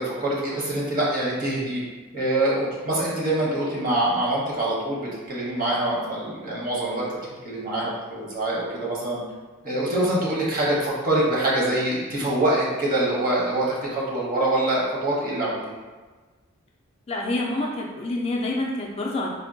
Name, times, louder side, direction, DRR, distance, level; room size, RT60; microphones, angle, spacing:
voice 1, 0.0-1.8 2.1-9.2 9.6-15.6, right 1 dB, 45° right, -5 dB, 0.8 m, -25 dB
voice 2, 17.1-19.3, left 2 dB, 30° left, -1 dB, 0.3 m, -27 dB
3.5 x 2.1 x 2.6 m, 1.3 s
head